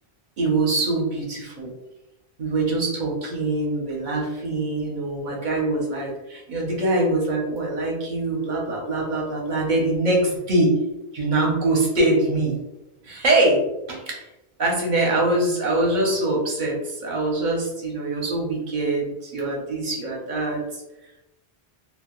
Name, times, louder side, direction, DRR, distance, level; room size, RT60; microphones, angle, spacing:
voice 1, 0.4-1.7 2.4-10.7 11.1-12.6 13.0-13.6 13.9-14.2 14.6-20.6, right 2 dB, 50° right, -2 dB, 0.7 m, -23 dB
2.1 x 2.1 x 2.9 m, 0.93 s
omnidirectional pair, 1.1 m